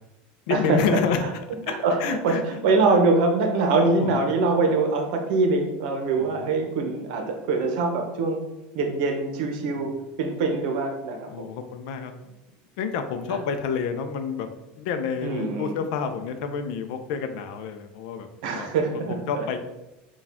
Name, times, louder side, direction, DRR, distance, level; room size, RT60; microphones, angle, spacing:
voice 1, 0.5-1.2 1.7-2.4 3.8-4.1 6.2-6.5 9.6-9.9 11.3-12.3 12.8-14.5 14.8-18.3 18.5-18.7 19.1-19.6, left 6 dB, 65° left, 8 dB, 0.5 m, -29 dB
voice 2, 1.7-8.4 8.7-9.9 10.2-11.5 13.3-13.4 15.2-15.8 18.4-19.4, right 3 dB, 70° right, 4 dB, 0.8 m, -24 dB
4.7 x 2.3 x 3.5 m, 0.95 s
cardioid pair, 165°, 5 cm